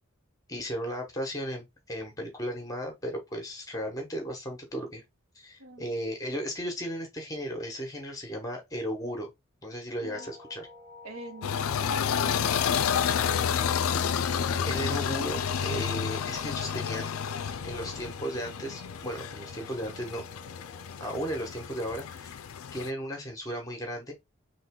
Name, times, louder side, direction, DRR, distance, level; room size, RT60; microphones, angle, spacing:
voice 1, 0.5-5.0 5.3-9.3 9.6-10.7 13.8-14.2 14.7-17.1 17.6-20.2 21.0-22.4 22.7-24.1, equal, 15° left, 1.1 m, -35 dB
voice 2, 5.6-6.0 10.0-10.3 11.0-11.5 12.2-13.3, right 2 dB, 80° right, 0.9 m, -46 dB
sound 1, 10.1-20.9, left 1 dB, 45° right, 1.1 m, -52 dB
sound 2, 11.4-22.9, left 7 dB, 80° left, 0.4 m, -30 dB
3.8 x 3.0 x 3.6 m
head